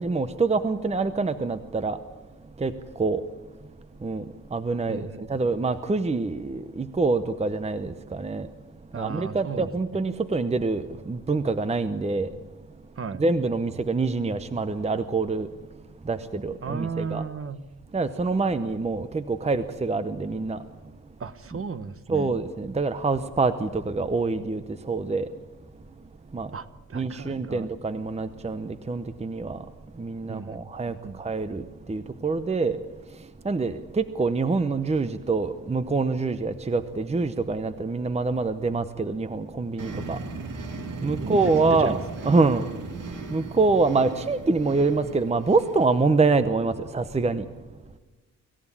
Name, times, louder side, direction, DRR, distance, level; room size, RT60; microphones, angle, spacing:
voice 1, 0.0-2.0 2.6-2.7 3.0-3.2 4.0-4.2 4.5-8.5 9.0-12.3 13.2-15.5 16.1-17.2 17.9-20.6 22.1-24.6 24.9-25.3 26.3-26.5 26.9-29.6 30.0-31.6 31.9-32.8 33.4-40.2 41.0-42.0 42.2-42.6 43.3-47.4, right 3 dB, 20° right, 11 dB, 0.8 m, -25 dB
voice 2, 4.9-5.3 8.9-9.7 12.9-13.2 16.6-17.6 21.2-22.3 26.5-27.7 30.3-30.6 30.8-31.2 41.0-42.0, right 5 dB, 40° right, 12 dB, 1.1 m, -35 dB
sound 1, 39.8-46.2, right 3 dB, 70° right, 2.5 m, -36 dB
25.0 x 15.5 x 9.9 m, 1.2 s
wide cardioid pair, 155°, 33 cm